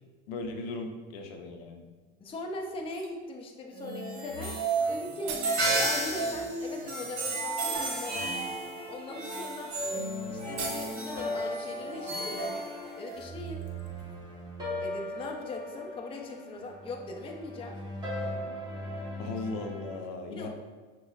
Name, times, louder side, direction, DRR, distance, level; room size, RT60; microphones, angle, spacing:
voice 1, 0.3-1.9 19.2-20.5, left 3 dB, 70° left, 4 dB, 0.6 m, -37 dB
sound 1, 1.9-2.0 2.8-3.2 4.7-4.8 5.0-5.7 7.1-7.2 7.8-8.0 8.9-9.0 9.4-9.5 9.8-9.9 10.4-11.2 12.3-14.3 14.6-14.7, right 5 dB, 70° right, 0.7 m, -45 dB
voice 2, 2.2-4.5 4.9-5.4 5.7-8.3 8.9-9.7 10.3-12.7 13.0-13.6 14.8-17.8 20.3-20.5, left 2 dB, 15° left, 1 dB, 0.4 m, -40 dB
sound 2, 3.7-13.2, right 2 dB, 40° right, 1.1 m, -33 dB
sound 3, 7.7-20.0, equal, 15° right, 1.1 m, -39 dB
5.4 x 2.1 x 2.3 m, 1.4 s
hypercardioid pair, 90°, 32 cm